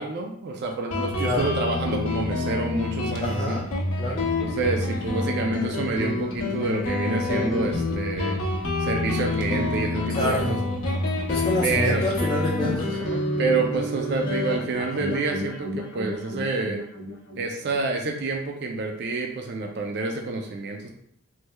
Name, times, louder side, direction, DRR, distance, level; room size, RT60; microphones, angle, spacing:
voice 1, 0.0-3.6 4.4-8.4 8.8-10.6 10.9-11.0 11.6-12.0 12.9-16.8 17.4-20.9, right 3 dB, 55° right, 2 dB, 0.4 m, -28 dB
Guitar, 0.9-18.1, left 2 dB, 90° left, 0.6 m, -28 dB
voice 2, 3.2-3.6 4.0-4.2 10.1-10.6 11.3-13.0, left 1 dB, 20° left, -5 dB, 0.4 m, -27 dB
3.2 x 3.1 x 2.2 m, 0.66 s
head